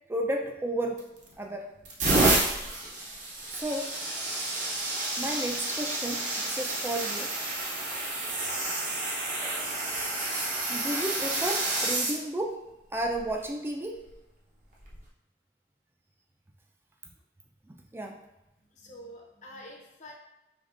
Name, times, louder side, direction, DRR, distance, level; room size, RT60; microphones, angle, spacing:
voice 1, 0.1-1.0 1.4-1.7 3.5-3.9 5.2-7.3 9.4-9.7 10.7-12.6 12.9-14.1 17.7-18.2, right 1 dB, 15° right, 2 dB, 0.3 m, -33 dB
sound 1, 1.0-1.3 1.8-12.2 13.0-13.3 14.8-15.0, right 2 dB, 40° right, 0.8 m, -29 dB
voice 2, 18.7-20.1, equal, 40° left, -1 dB, 0.7 m, -47 dB
5.1 x 3.1 x 2.4 m, 0.94 s
head